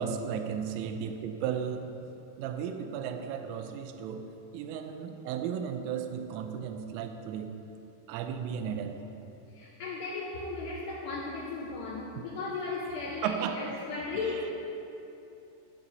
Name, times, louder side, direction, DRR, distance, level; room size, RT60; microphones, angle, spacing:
voice 1, 0.0-1.9 2.4-4.3 4.5-7.5 8.1-9.0 13.2-13.7 14.2-14.5, right 7 dB, 85° right, 7 dB, 3.1 m, -34 dB
voice 2, 9.5-14.5, left 3 dB, 80° left, -5 dB, 2.4 m, -36 dB
15.0 x 7.3 x 2.7 m, 2.8 s
omnidirectional pair, 5.8 m